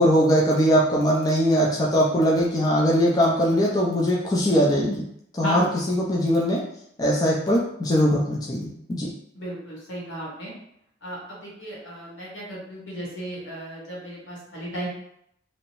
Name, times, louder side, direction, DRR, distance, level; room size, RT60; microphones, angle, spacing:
voice 1, 0.0-5.0 5.3-6.6 7.0-9.1, equal, 20° left, -4 dB, 0.4 m, -21 dB
voice 2, 5.4-5.7 9.3-10.5 11.0-14.9, equal, 85° left, -5 dB, 1.1 m, -34 dB
2.7 x 2.0 x 2.9 m, 0.73 s
head